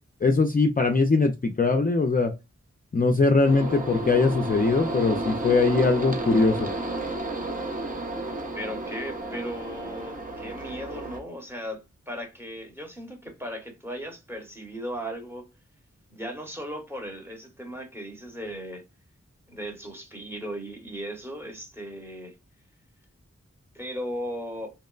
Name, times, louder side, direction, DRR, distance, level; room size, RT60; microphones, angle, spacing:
voice 1, 0.2-2.3 2.9-6.7, left 3 dB, 30° left, 0.4 m, -21 dB
sound 1, 3.4-11.2, right 2 dB, 30° right, 0.7 m, -32 dB
voice 2, 8.5-15.5 16.1-18.8 19.5-22.4 23.7-24.7, equal, 10° right, 1.0 m, -37 dB
2.9 x 2.1 x 2.3 m
wide cardioid pair, 45°, 29 cm